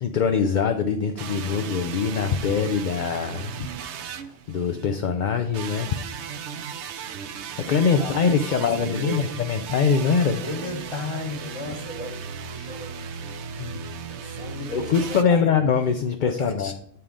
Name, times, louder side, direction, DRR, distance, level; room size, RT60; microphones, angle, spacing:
voice 1, 0.0-3.7 4.5-5.9 7.7-10.4 13.6-13.8 14.7-16.7, left 6 dB, 50° left, 7 dB, 0.6 m, -23 dB
sound 1, 1.2-4.9 5.5-15.2, right 7 dB, 75° right, 0.9 m, -36 dB
voice 2, 8.0-9.4 10.4-12.9 14.1-15.6 16.2-16.7, left 2 dB, 25° left, 3 dB, 1.2 m, -35 dB
9.4 x 3.7 x 5.0 m, 0.70 s
omnidirectional pair, 1.2 m